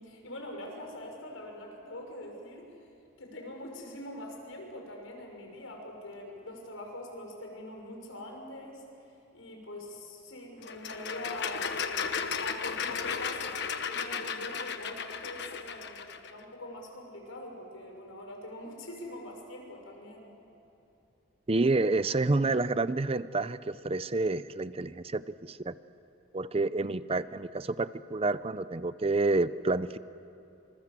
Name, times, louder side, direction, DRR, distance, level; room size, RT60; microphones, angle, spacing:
voice 1, 0.0-2.7 3.2-8.8 9.3-12.1 12.3-13.5 13.9-20.3, left 1 dB, 85° left, 2 dB, 6.0 m, -43 dB
sound 1, 10.6-16.3, left 6 dB, 55° left, 1.3 m, -35 dB
voice 2, 21.5-25.7 26.3-30.0, right 3 dB, 30° right, 14 dB, 0.6 m, -29 dB
26.5 x 26.5 x 7.6 m, 2.8 s
head